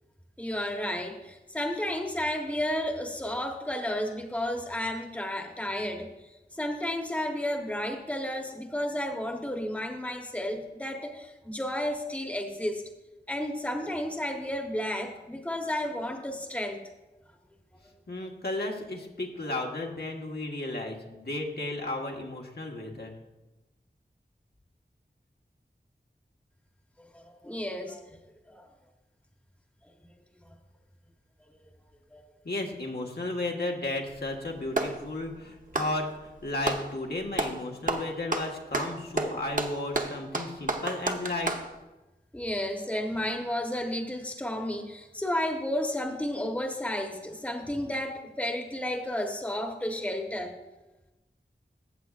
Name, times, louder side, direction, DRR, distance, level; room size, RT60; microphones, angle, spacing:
voice 1, 0.4-6.1 6.5-12.8 13.3-16.8 27.1-28.0 28.5-28.7 32.1-32.2 42.3-50.6, left 1 dB, 10° left, 3 dB, 1.1 m, -32 dB
voice 2, 18.1-23.1 32.4-41.5, left 2 dB, 70° left, 0 dB, 1.3 m, -34 dB
Clapping, 34.1-35.0 35.6-36.9 37.3-37.6 37.9-41.7, right 2 dB, 50° right, 0.9 m, -31 dB
14.5 x 7.9 x 2.4 m, 1.1 s
wide cardioid pair, 60°, 17 cm